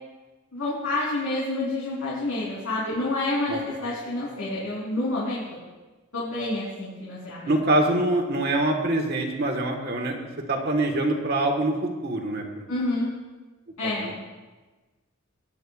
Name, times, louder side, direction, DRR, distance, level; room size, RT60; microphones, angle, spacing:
voice 1, 0.5-5.4 6.1-7.5 12.7-13.1 13.8-14.1, left 2 dB, 85° left, -8 dB, 3.5 m, -28 dB
voice 2, 7.5-10.2 10.5-12.6 13.8-14.2, right 1 dB, 50° right, 2 dB, 1.5 m, -25 dB
19.5 x 10.0 x 2.4 m, 1.2 s
head